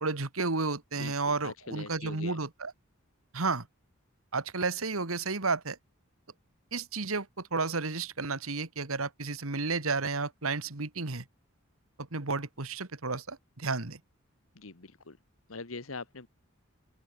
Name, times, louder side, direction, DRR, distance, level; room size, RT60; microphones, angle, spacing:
voice 1, 0.0-2.7 3.3-3.7 4.3-5.8 6.7-11.2 12.1-14.0, right 3 dB, 85° right, 2.0 m, -32 dB
voice 2, 1.0-2.4 14.5-15.2 15.5-16.3, left 3 dB, 75° left, 1.6 m, -43 dB
open air
head